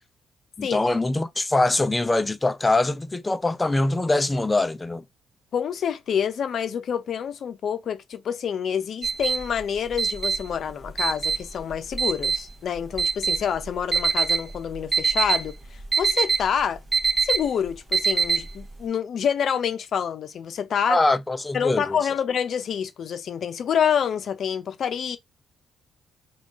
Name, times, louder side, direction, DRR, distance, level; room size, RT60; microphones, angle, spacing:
voice 1, 0.6-5.0 20.9-22.0, left 2 dB, 15° left, 0.5 m, -23 dB
voice 2, 5.5-16.8 17.2-21.0 21.5-25.2, left 8 dB, 60° left, 0.6 m, -27 dB
sound 1, 9.0-18.8, right 5 dB, 20° right, 1.0 m, -25 dB
3.7 x 2.4 x 3.5 m
cardioid pair, 90°, 0 cm